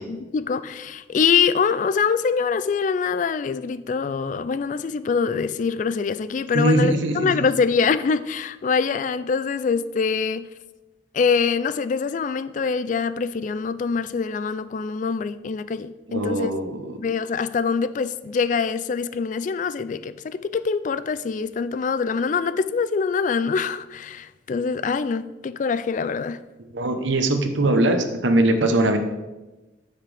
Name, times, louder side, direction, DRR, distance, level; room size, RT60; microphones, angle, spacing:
voice 1, 0.0-10.4 11.1-16.5 17.0-26.4, left 5 dB, 40° left, 15 dB, 0.3 m, -24 dB
voice 2, 6.5-7.5 16.1-17.0 26.7-29.0, right 1 dB, 80° right, 6 dB, 1.0 m, -21 dB
13.5 x 5.8 x 3.4 m, 1.1 s
head